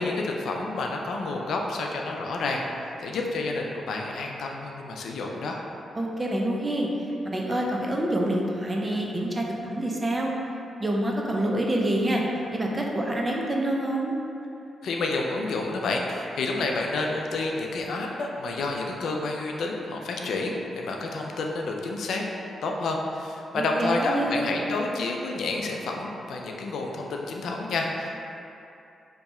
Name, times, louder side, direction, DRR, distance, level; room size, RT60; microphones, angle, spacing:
voice 1, 0.0-2.6 3.0-5.6 14.8-22.2 22.6-28.3, left 3 dB, 75° left, 1 dB, 0.3 m, -29 dB
voice 2, 5.9-6.9 7.2-10.3 10.8-12.2 12.5-14.1 23.5-24.4, right 1 dB, 25° right, -1 dB, 0.5 m, -27 dB
2.7 x 2.2 x 4.1 m, 2.7 s
cardioid pair, 60°, 0 cm